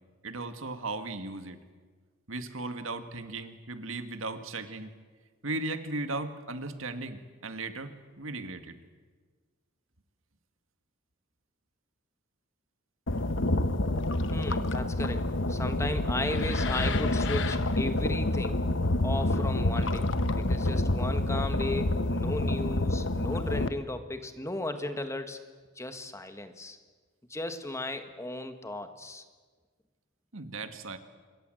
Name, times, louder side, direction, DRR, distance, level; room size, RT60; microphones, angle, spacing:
voice 1, 0.2-1.6 2.3-4.9 5.4-8.8 30.3-31.0, right 2 dB, 85° right, 9 dB, 1.9 m, -37 dB
sound 1, 13.1-23.7, left 2 dB, 65° left, 1.2 m, -28 dB
voice 2, 14.3-18.6 19.0-25.4 25.8-26.8 27.3-29.2, left 1 dB, 15° left, 8 dB, 1.5 m, -36 dB
26.0 x 22.5 x 7.8 m, 1.5 s
head